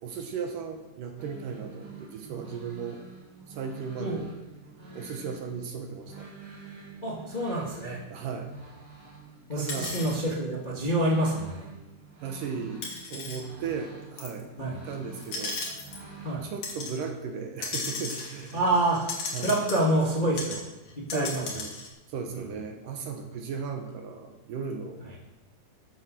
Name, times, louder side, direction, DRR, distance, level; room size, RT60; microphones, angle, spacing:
voice 1, 0.0-3.0 3.5-4.3 4.9-6.3 8.1-8.5 9.5-10.0 12.2-15.8 16.4-18.7 19.3-19.6 21.1-21.8 22.1-25.1, right 5 dB, 70° right, 4 dB, 2.5 m, -36 dB
sound 1, 1.2-16.3, right 3 dB, 25° right, 2.5 m, -48 dB
voice 2, 7.0-8.0 9.5-11.7 14.6-14.7 16.2-16.4 18.5-19.0 19.4-20.6 20.9-21.4 22.3-22.4, right 1 dB, 20° left, -3 dB, 1.6 m, -27 dB
sound 2, 9.7-10.1 11.3-11.4 12.8-13.4 14.2-14.4 15.1-16.0 16.6-17.0 17.6-20.1 20.4-20.6 20.9-21.9, left 3 dB, 55° left, 3.6 m, -36 dB
13.5 x 8.0 x 6.7 m, 1.0 s
omnidirectional pair, 4.4 m